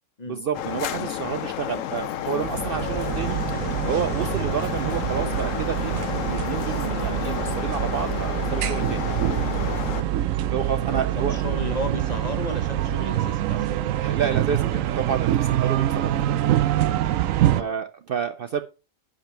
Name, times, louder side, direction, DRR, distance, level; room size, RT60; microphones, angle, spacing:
voice 1, 0.3-9.1 10.4-11.5 14.0-16.1 17.6-18.6, right 7 dB, 60° right, 0.6 m, -30 dB
sound 1, 0.5-10.0, left 11 dB, 80° left, 1.0 m, -31 dB
sound 2, 2.4-17.6, right 12 dB, 85° right, 1.0 m, -25 dB
voice 2, 10.8-13.8 17.4-17.8, left 1 dB, 35° left, 1.0 m, -34 dB
10.5 x 5.3 x 4.5 m
omnidirectional pair, 1.4 m